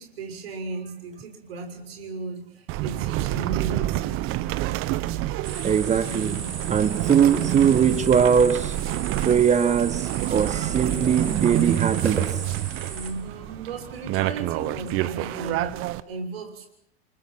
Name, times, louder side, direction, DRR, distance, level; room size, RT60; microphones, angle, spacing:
voice 1, 0.0-4.3 6.0-6.4 12.9-16.7, right 3 dB, 65° right, 6.2 m, -36 dB
sound 1, 2.7-16.0, right 15 dB, 40° right, 1.3 m, -28 dB
sound 2, 5.4-13.1, right 4 dB, 80° right, 4.8 m, -36 dB
voice 2, 5.6-6.4 6.7-8.8 9.2-12.4, right 7 dB, 20° right, 1.5 m, -21 dB
29.5 x 24.5 x 5.9 m
figure-of-eight pair, 90°, 33 cm